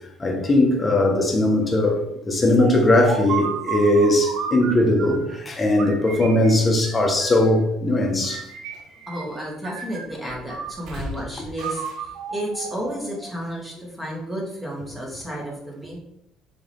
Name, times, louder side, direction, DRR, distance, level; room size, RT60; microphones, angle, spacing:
voice 1, 0.2-8.5 11.4-11.5, left 1 dB, 20° left, 1.4 m, -19 dB
sound 1, 2.6-5.3 5.8-7.6 8.2-9.4 9.6-11.1 11.6-13.4, right 6 dB, 70° right, 0.9 m, -33 dB
voice 2, 9.1-16.0, right 1 dB, 5° right, 2.1 m, -32 dB
6.6 x 4.4 x 3.7 m
cardioid pair, 125°, 0 cm